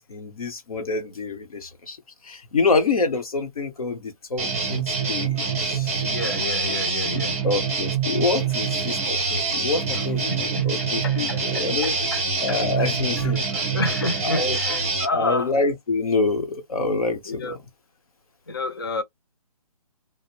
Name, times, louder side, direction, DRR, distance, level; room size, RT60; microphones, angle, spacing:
voice 1, 0.0-2.0 2.2-6.0 7.4-12.0 12.4-13.5 14.2-14.6 15.1-17.6, left 3 dB, 65° left, 0.9 m, -26 dB
sound 1, 4.4-15.1, right 5 dB, 20° right, 0.6 m, -25 dB
voice 2, 6.0-7.4 9.9-10.0 10.6-10.7 11.0-12.2 12.5-12.6 13.2-15.5 17.3-17.6 18.5-19.0, left 3 dB, 40° left, 0.4 m, -30 dB
2.5 x 2.0 x 3.0 m
hypercardioid pair, 170°, 20 cm